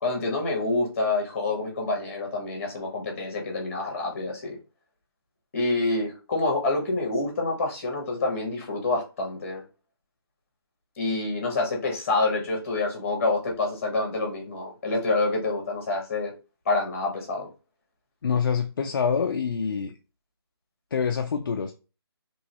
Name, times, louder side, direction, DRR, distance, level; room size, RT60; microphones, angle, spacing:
voice 1, 0.0-4.6 5.5-9.6 11.0-16.3 16.6-17.5, left 2 dB, 35° left, 1.3 m, -27 dB
voice 2, 18.2-20.0 20.9-21.7, left 6 dB, 55° left, 0.4 m, -26 dB
3.0 x 2.8 x 2.8 m
figure-of-eight pair, 160°, 13 cm